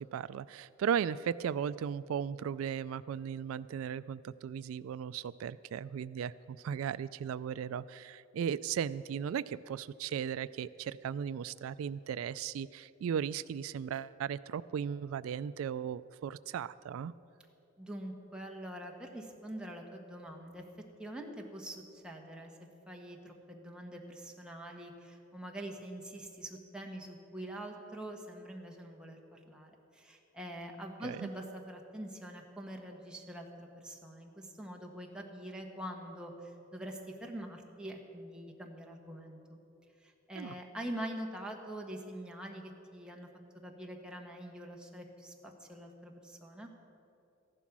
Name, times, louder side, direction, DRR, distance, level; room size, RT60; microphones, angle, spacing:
voice 1, 0.0-17.1 31.0-31.3 40.4-40.5, right 8 dB, 85° right, 18 dB, 0.3 m, -36 dB
voice 2, 17.8-20.6 21.0-22.5 22.9-39.6 40.0-43.3 43.5-46.7, right 1 dB, 5° right, 0 dB, 1.3 m, -44 dB
14.5 x 11.0 x 6.1 m, 2.8 s
head